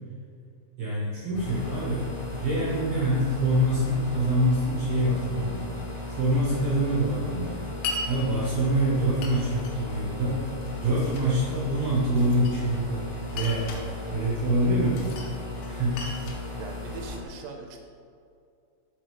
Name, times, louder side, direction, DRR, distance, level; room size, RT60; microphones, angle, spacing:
voice 1, 0.8-2.1 2.4-5.7 6.2-7.6 8.1-10.4 10.7-13.0 13.3-13.7 14.1-15.0 15.6-16.0, right 1 dB, 70° right, -8 dB, 1.6 m, -25 dB
sound 1, 1.3-17.2, left 3 dB, 70° left, 3.1 m, -37 dB
Glass, 7.8-8.1 9.2-9.8 10.6-11.3 12.2-12.9 13.3-13.9 14.9-15.3 15.6-17.3, left 3 dB, 85° left, 3.1 m, -37 dB
voice 2, 16.5-17.8, right 4 dB, 85° right, 3 dB, 2.7 m, -41 dB
6.4 x 4.8 x 3.2 m, 2.4 s
omnidirectional pair, 4.9 m